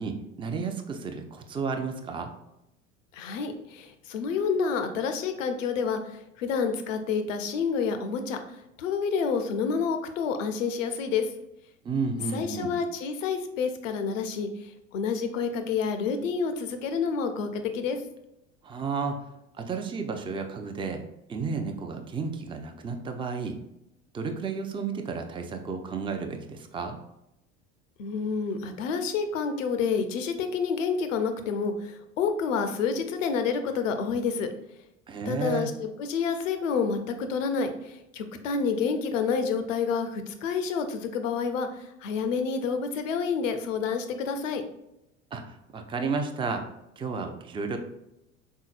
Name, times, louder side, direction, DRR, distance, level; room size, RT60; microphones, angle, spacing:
voice 1, 0.0-2.3 11.8-12.7 18.6-19.2 19.6-21.0 21.3-23.6 24.1-27.0 35.1-35.7 45.3-46.7 47.0-47.8, right 4 dB, 15° right, 5 dB, 0.5 m, -32 dB
voice 2, 3.1-11.3 12.3-18.0 28.0-34.5 35.3-44.6, left 5 dB, 75° left, 7 dB, 0.7 m, -29 dB
4.5 x 3.7 x 2.4 m, 0.86 s
hypercardioid pair, 75°, 38 cm